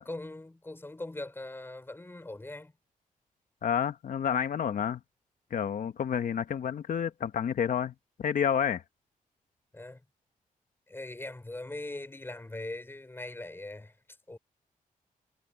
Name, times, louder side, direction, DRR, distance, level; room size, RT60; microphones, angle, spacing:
voice 1, 0.0-2.7 9.7-10.0 10.9-14.0 14.3-14.4, left 2 dB, 15° left, 4.2 m, -41 dB
voice 2, 3.6-5.0 5.5-8.8, left 8 dB, 70° left, 1.2 m, -29 dB
cardioid pair, 105°, 14 cm